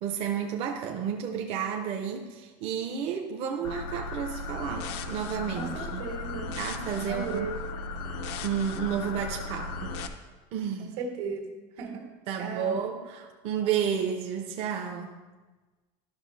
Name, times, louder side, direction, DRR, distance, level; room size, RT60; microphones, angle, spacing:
voice 1, 0.0-6.1 6.6-7.6 8.4-10.0 10.5-11.0 12.3-15.2, right 8 dB, 45° right, 2 dB, 0.6 m, -31 dB
sound 1, 3.6-10.1, left 3 dB, 80° left, 0.7 m, -36 dB
voice 2, 5.5-6.6 6.9-7.5 10.8-12.7, right 4 dB, 85° right, 2 dB, 1.7 m, -37 dB
12.0 x 5.9 x 3.2 m, 1.3 s
cardioid pair, 165°, 14 cm